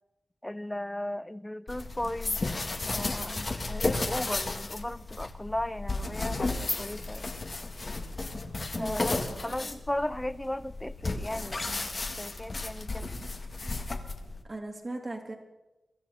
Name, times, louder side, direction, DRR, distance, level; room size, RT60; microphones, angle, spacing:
voice 1, 0.4-2.4 2.8-7.3 8.8-9.2 9.4-11.9 12.2-13.1, left 1 dB, 15° left, 15 dB, 0.7 m, -36 dB
sound 1, 1.7-14.4, left 3 dB, 45° left, 1.8 m, -33 dB
voice 2, 8.8-9.7 14.5-15.3, right 2 dB, 40° right, 3 dB, 3.1 m, -39 dB
23.5 x 13.0 x 4.2 m, 1.0 s
cardioid pair, 60°, 0 cm